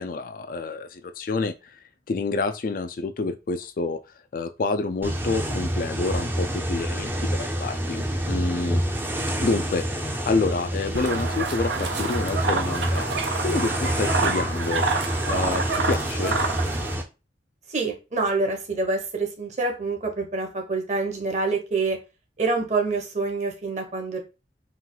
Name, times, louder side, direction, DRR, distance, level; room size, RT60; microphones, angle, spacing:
voice 1, 0.0-1.8 2.1-4.0 4.3-8.8 9.4-13.1 13.4-14.9 15.3-16.4, left 3 dB, 50° left, 0.4 m, -28 dB
sound 1, 5.0-17.0, equal, 10° right, 0.5 m, -28 dB
sound 2, 10.9-16.9, right 4 dB, 75° right, 0.7 m, -28 dB
voice 2, 17.7-22.0 22.4-24.2, right 3 dB, 40° right, 1.1 m, -26 dB
4.3 x 2.4 x 3.9 m
head